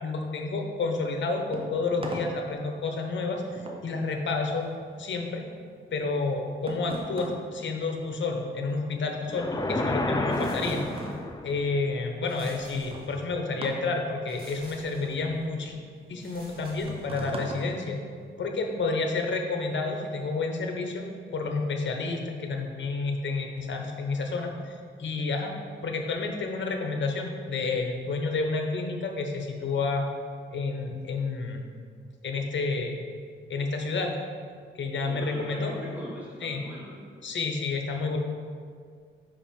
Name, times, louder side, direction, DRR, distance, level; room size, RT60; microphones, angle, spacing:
voice 1, 0.0-4.6 5.0-5.4 5.9-10.8 11.4-15.7 16.1-18.0 18.4-21.1 21.3-25.5 25.8-30.1 30.5-31.6 32.2-33.0 33.5-34.2 34.8-35.7 36.4-36.6 37.2-38.2, left 3 dB, 60° left, 3 dB, 0.9 m, -30 dB
sound 1, 1.0-8.7 8.9-18.6, right 1 dB, 25° right, 0.7 m, -42 dB
sound 2, 9.3-11.6, left 2 dB, 15° left, 0.5 m, -29 dB
sound 3, 10.2-11.4 12.2-13.5 14.3-15.3 16.2-17.5, right 1 dB, 45° right, 1.6 m, -50 dB
voice 2, 35.0-36.9, equal, 5° right, -7 dB, 1.6 m, -39 dB
5.3 x 5.0 x 5.2 m, 2.1 s
wide cardioid pair, 140°, 21 cm